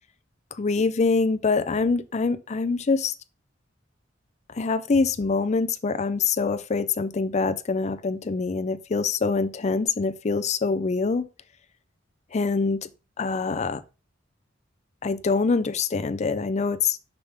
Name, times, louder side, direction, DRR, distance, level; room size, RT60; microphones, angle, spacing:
voice 1, 0.6-3.1 4.5-11.3 12.3-12.9 13.2-13.8 15.0-17.0, left 4 dB, 35° left, 0.5 m, -24 dB
6.8 x 5.6 x 3.4 m
head